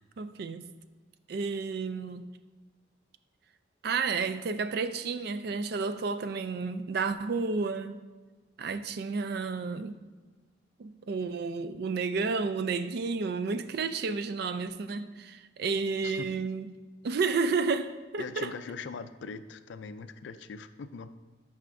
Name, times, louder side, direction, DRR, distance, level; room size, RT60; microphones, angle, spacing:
voice 1, 0.2-0.6 1.3-2.2 3.8-8.0 8.6-9.9 10.8-16.7 17.0-18.5, right 4 dB, 55° right, 0.3 m, -31 dB
voice 2, 16.0-16.5 18.2-21.1, left 5 dB, 65° left, 0.3 m, -41 dB
9.0 x 5.5 x 2.6 m
head